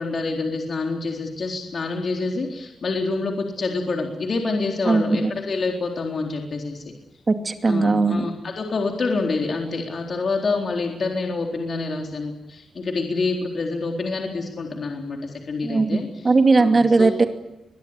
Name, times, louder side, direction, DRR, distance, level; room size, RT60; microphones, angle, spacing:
voice 1, 0.0-6.8 7.6-16.1 16.6-17.1, left 3 dB, 40° left, 2 dB, 3.9 m, -27 dB
voice 2, 4.8-5.3 7.3-8.2 15.6-17.2, right 3 dB, 25° right, 7 dB, 2.6 m, -18 dB
23.0 x 22.0 x 10.0 m, 0.95 s
wide cardioid pair, 150°, 0 cm